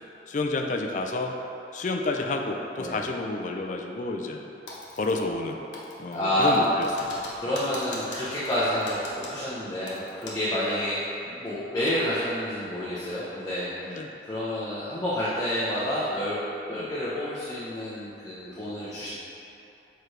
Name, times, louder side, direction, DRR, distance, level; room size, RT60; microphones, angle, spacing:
voice 1, 0.3-1.4 1.7-4.5 4.9-5.6 6.0-7.6 13.9-14.1 16.7-16.9, left 2 dB, 45° left, 3 dB, 0.4 m, -30 dB
Typing, 4.7-5.5 5.7-10.6 10.8-10.9 11.4-12.0, left 2 dB, 85° left, 1.1 m, -42 dB
voice 2, 6.1-6.7 7.4-13.9 14.2-16.4 16.7-19.1, left 1 dB, 20° left, -11 dB, 0.9 m, -29 dB
7.0 x 4.5 x 3.2 m, 2.8 s
head